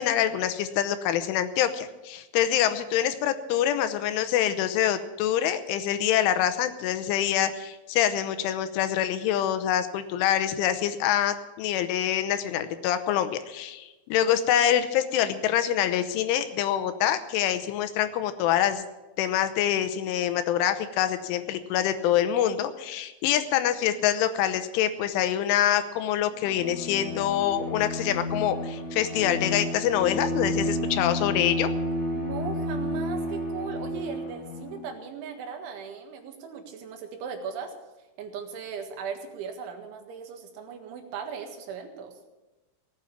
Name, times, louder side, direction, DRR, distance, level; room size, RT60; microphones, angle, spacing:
voice 1, 0.0-18.8 19.2-31.7, left 10 dB, 85° left, 10 dB, 3.4 m, -25 dB
Bowed string instrument, 26.4-34.9, left 1 dB, 60° left, 4.7 m, -31 dB
voice 2, 32.1-37.7 38.2-42.1, right 6 dB, 80° right, 4 dB, 4.1 m, -38 dB
18.0 x 9.0 x 7.1 m, 1.1 s
omnidirectional pair, 5.5 m